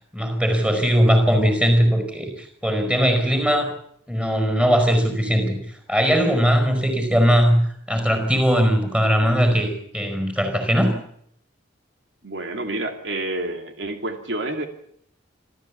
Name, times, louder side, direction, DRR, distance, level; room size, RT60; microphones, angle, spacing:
voice 1, 0.1-3.7 4.1-5.6 5.9-11.0, equal, 5° right, 6 dB, 5.0 m, -19 dB
voice 2, 12.2-14.7, right 2 dB, 75° right, 5 dB, 2.6 m, -28 dB
27.0 x 14.0 x 8.5 m, 0.69 s
head